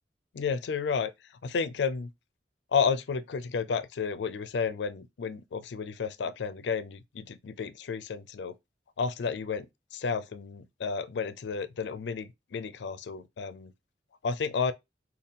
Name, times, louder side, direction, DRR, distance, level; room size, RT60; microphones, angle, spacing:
voice 1, 0.3-1.1 1.4-2.1 2.7-8.6 9.0-9.7 9.9-13.7 14.2-14.7, left 5 dB, 80° left, 0.4 m, -31 dB
4.0 x 2.3 x 3.6 m
head